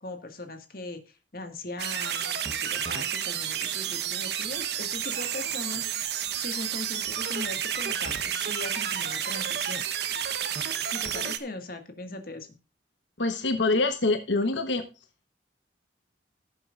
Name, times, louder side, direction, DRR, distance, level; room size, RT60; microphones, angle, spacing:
voice 1, 0.0-5.9 6.4-9.9 10.9-12.5, left 2 dB, 55° left, 6 dB, 1.8 m, -39 dB
sound 1, 1.8-11.4, right 9 dB, 65° right, 1.0 m, -31 dB
voice 2, 13.2-14.8, left 3 dB, 85° left, 8 dB, 1.1 m, -25 dB
16.5 x 7.6 x 2.5 m, 0.31 s
head